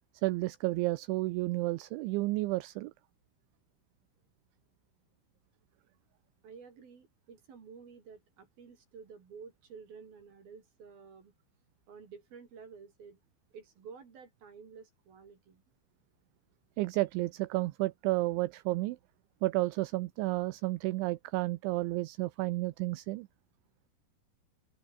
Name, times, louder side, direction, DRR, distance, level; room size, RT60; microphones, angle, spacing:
voice 1, 0.2-2.9 16.8-19.0 19.4-23.3, right 20 dB, 80° right, 2.9 m, -31 dB
voice 2, 6.4-11.4 11.9-13.2 13.5-15.6, right 6 dB, 50° right, 5.3 m, -51 dB
open air
omnidirectional pair, 6.0 m